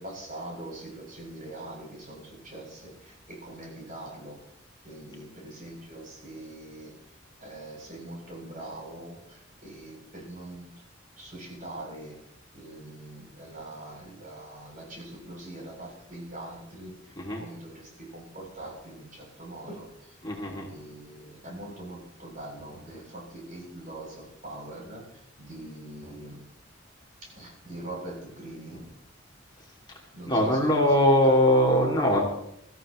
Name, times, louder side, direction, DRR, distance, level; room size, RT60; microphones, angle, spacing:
voice 1, 0.0-4.4 4.8-10.7 11.2-12.2 12.5-20.2 20.4-26.4 27.2-28.8 30.1-31.3, right 1 dB, 45° right, -1 dB, 7.5 m, -43 dB
voice 2, 20.2-20.7 30.3-32.2, equal, 20° left, -2 dB, 2.5 m, -21 dB
23.5 x 14.5 x 3.1 m, 0.80 s
head